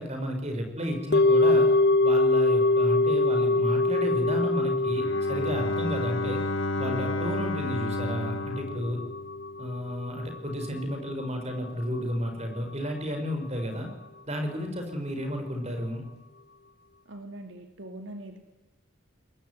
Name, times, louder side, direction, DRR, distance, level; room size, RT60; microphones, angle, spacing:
voice 1, 0.0-1.7 2.0-6.4 6.8-9.0 9.6-13.9 14.3-16.0, equal, 35° right, 5 dB, 5.1 m, -32 dB
sound 1, 1.1-11.4 11.7-11.8, left 2 dB, 50° left, 0.8 m, -25 dB
Bowed string instrument, 4.8-9.7, left 2 dB, 75° left, 1.6 m, -33 dB
voice 2, 17.1-18.4, right 1 dB, 70° right, 6 dB, 2.4 m, -42 dB
22.5 x 20.5 x 9.6 m, 1.1 s
head